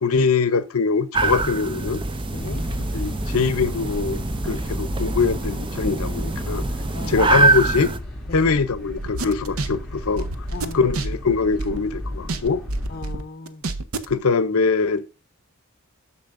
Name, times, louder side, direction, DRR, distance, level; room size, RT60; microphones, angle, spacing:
voice 1, 0.0-2.0 2.9-6.6 7.1-7.9 8.3-10.3 10.7-12.6 14.1-15.3, left 4 dB, 80° left, 0.7 m, -22 dB
sound 1, 1.1-8.0, right 3 dB, 20° right, 0.5 m, -24 dB
voice 2, 2.3-2.6 6.9-7.3 8.3-8.5 10.5-10.9 12.9-13.6, left 3 dB, 40° left, 0.6 m, -37 dB
sound 2, 2.3-13.0, left 1 dB, ahead, 2.6 m, -34 dB
sound 3, 9.0-11.9 12.3-14.2, right 2 dB, 75° right, 0.8 m, -29 dB
10.0 x 6.7 x 2.5 m
head